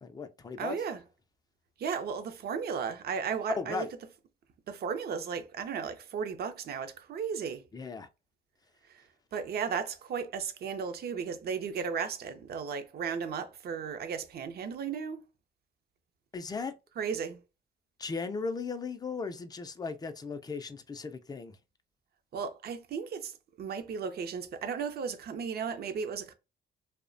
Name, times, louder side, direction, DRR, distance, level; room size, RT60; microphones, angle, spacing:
voice 1, 0.0-0.8 3.6-3.9 7.7-8.1 16.3-16.7 18.0-21.5, left 4 dB, 20° left, 0.4 m, -37 dB
voice 2, 0.6-1.0 1.8-3.9 4.7-7.6 9.3-15.2 17.0-17.4 22.3-23.3 23.6-26.3, right 6 dB, 55° right, 0.5 m, -35 dB
2.7 x 2.1 x 2.5 m
cardioid pair, 90°, 20 cm